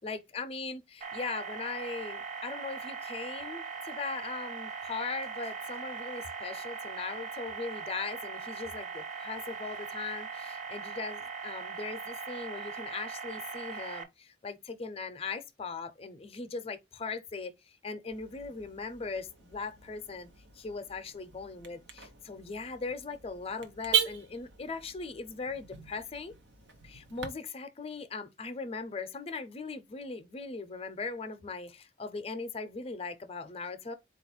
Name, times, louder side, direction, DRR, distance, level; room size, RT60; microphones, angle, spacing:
voice 1, 0.0-17.5 17.8-20.3 20.6-26.3 26.8-33.9, left 4 dB, 35° left, 0.5 m, -39 dB
sound 1, 1.0-14.0, right 5 dB, 45° right, 0.7 m, -40 dB
Car / Alarm, 18.1-27.3, right 8 dB, 90° right, 0.8 m, -38 dB
4.2 x 2.4 x 4.2 m
head